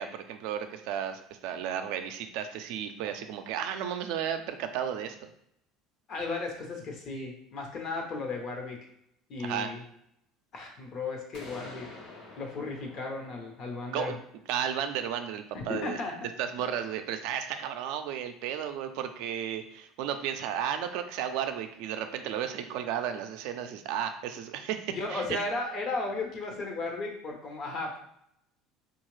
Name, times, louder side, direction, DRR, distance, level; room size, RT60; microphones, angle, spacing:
voice 1, 0.0-5.2 9.4-9.7 13.9-14.2 14.5-16.0 16.4-25.4, right 9 dB, 75° right, 7 dB, 0.4 m, -33 dB
voice 2, 6.1-8.8 9.3-9.8 10.5-11.9 12.4-14.1 15.5-16.1 24.9-28.0, left 3 dB, 50° left, 1 dB, 0.9 m, -35 dB
sound 1, 11.3-15.1, left 3 dB, 75° left, 1.1 m, -49 dB
3.7 x 2.4 x 3.1 m, 0.74 s
supercardioid pair, 115°, 0 cm